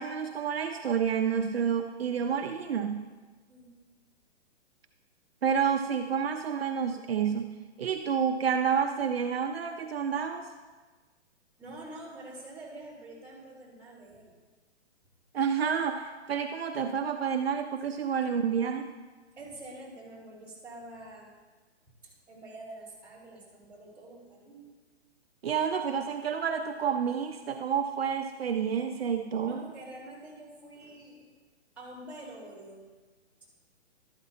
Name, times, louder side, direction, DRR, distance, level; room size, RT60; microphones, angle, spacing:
voice 1, 0.0-3.1 5.4-7.5 7.8-10.5 15.3-18.9 25.4-29.6, right 7 dB, 60° right, 5 dB, 0.7 m, -29 dB
voice 2, 3.5-3.8 11.6-14.3 19.4-21.3 22.0-24.7 29.4-31.3 31.8-32.8, right 1 dB, 5° right, -12 dB, 3.6 m, -46 dB
12.5 x 12.5 x 2.8 m, 1.3 s
hypercardioid pair, 170°, 34 cm